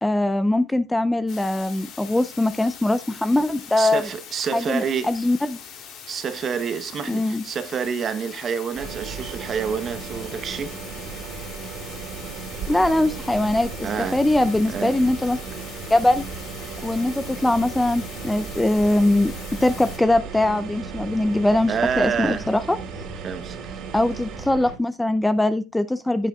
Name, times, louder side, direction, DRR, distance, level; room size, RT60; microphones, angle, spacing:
voice 1, 0.0-4.0 4.5-5.6 7.1-7.4 12.7-15.4 15.9-16.2 16.8-19.3 19.6-22.8 23.9-26.3, left 1 dB, 5° left, 0.5 m, -21 dB
sound 1, 1.3-20.0, left 8 dB, 50° left, 2.9 m, -42 dB
voice 2, 3.8-5.1 6.1-10.7 13.8-14.2 14.6-15.1 16.6-16.7 21.7-22.5 23.2-23.8, right 7 dB, 35° right, 1.0 m, -28 dB
sound 2, 8.7-24.8, right 5 dB, 55° right, 2.4 m, -35 dB
15.5 x 6.5 x 2.3 m
cardioid pair, 145°, 0 cm